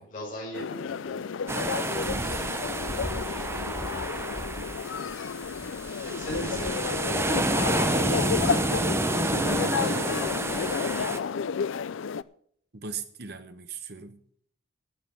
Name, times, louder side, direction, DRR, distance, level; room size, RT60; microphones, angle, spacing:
voice 1, 0.0-1.4 3.5-4.0 6.0-7.2, equal, 40° left, 5.9 m, -40 dB
sound 1, 0.5-12.2, left 6 dB, 70° left, 0.4 m, -31 dB
sound 2, 1.5-11.2, right 2 dB, 10° right, 0.6 m, -29 dB
voice 2, 2.0-2.6 6.3-6.7 9.3-10.2 12.7-14.2, right 4 dB, 50° right, 1.1 m, -39 dB
12.0 x 8.7 x 5.9 m
head